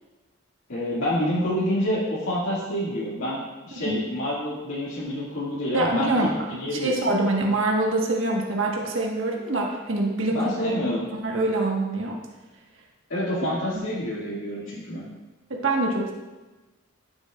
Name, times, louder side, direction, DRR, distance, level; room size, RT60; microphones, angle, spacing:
voice 1, 0.7-7.1 10.3-11.1 13.1-15.1, equal, 85° left, -9 dB, 2.1 m, -28 dB
voice 2, 3.7-4.0 5.7-10.5 11.2-12.1 13.7-13.8 15.5-16.1, right 2 dB, 75° right, -1 dB, 1.4 m, -25 dB
13.5 x 7.8 x 2.4 m, 1.2 s
head